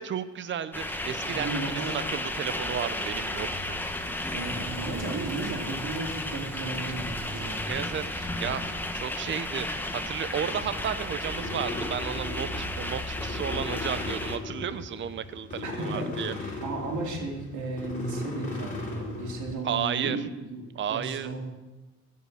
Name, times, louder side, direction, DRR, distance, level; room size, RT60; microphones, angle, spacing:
voice 1, 0.0-3.8 7.7-16.3 19.6-20.2 20.7-21.3, right 9 dB, 40° right, 13 dB, 0.6 m, -33 dB
sound 1, 0.7-14.4, left 1 dB, 5° left, 1.1 m, -33 dB
voice 2, 1.2-1.9 4.3-7.6 15.6-21.4, right 3 dB, 75° right, 1 dB, 2.7 m, -35 dB
Engine / Drill, 4.0-8.6, right 2 dB, 60° right, 3.1 m, -45 dB
sound 2, 10.5-19.6, left 3 dB, 25° left, 3.3 m, -38 dB
15.0 x 5.6 x 6.4 m, 1.1 s
cardioid pair, 90°, 30 cm